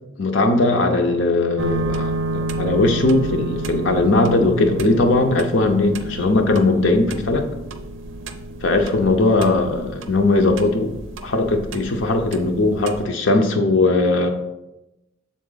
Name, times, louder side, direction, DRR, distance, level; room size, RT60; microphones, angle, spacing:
voice 1, 0.2-7.5 8.6-10.9 11.2-14.3, left 2 dB, 70° left, 5 dB, 0.7 m, -19 dB
sound 1, 1.6-13.0, right 2 dB, 75° right, 0.5 m, -30 dB
7.0 x 3.8 x 3.9 m, 0.94 s
head